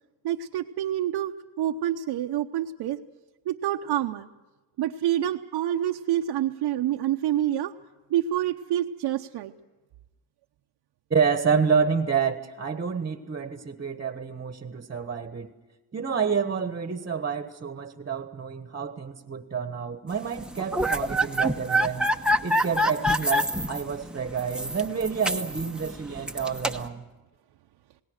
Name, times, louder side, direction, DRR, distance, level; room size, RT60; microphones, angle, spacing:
voice 1, 0.2-3.0 3.5-4.3 4.8-7.7 8.1-9.5, right 12 dB, 75° right, 1 dB, 0.9 m, -27 dB
voice 2, 11.1-15.5 15.9-22.0 22.4-27.1, right 6 dB, 25° right, 9 dB, 1.3 m, -28 dB
sound 1, 20.4-26.9, equal, ahead, 1.0 m, -27 dB
28.0 x 19.0 x 6.5 m, 1.1 s
cardioid pair, 110°, 41 cm